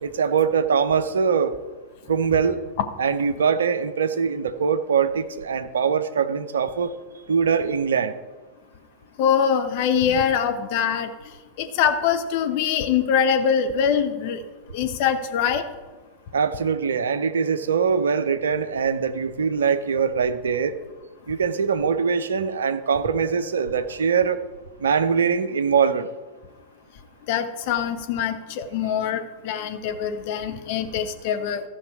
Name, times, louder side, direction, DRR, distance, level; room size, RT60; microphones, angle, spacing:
voice 1, 0.0-1.5 2.1-2.6 3.0-6.9 7.3-8.1 10.1-10.2 16.3-20.8 21.3-24.4 24.8-26.1, right 6 dB, 65° right, 11 dB, 0.6 m, -22 dB
voice 2, 9.2-11.1 11.6-14.4 14.7-15.6 27.3-31.6, left 7 dB, 50° left, 7 dB, 1.1 m, -23 dB
14.5 x 6.0 x 4.6 m, 1.3 s
figure-of-eight pair, 90°, 0 cm